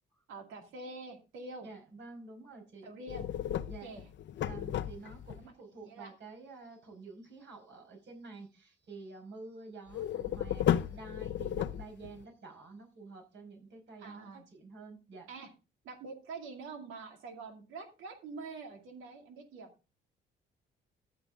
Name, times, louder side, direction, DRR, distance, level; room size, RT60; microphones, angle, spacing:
voice 1, 0.3-1.7 2.8-3.3 3.8-4.0 5.4-5.5 5.8-6.1 14.0-14.4 15.3-15.5 15.8-19.7, right 3 dB, 90° right, 3 dB, 2.5 m, -45 dB
voice 2, 1.6-2.9 3.7-3.9 4.4-15.3, right 3 dB, 65° right, 2 dB, 5.5 m, -49 dB
sound 1, 3.1-5.4 9.9-12.2, left 10 dB, 65° left, 0.7 m, -33 dB
14.5 x 6.8 x 3.7 m, 0.31 s
cardioid pair, 90°, 20 cm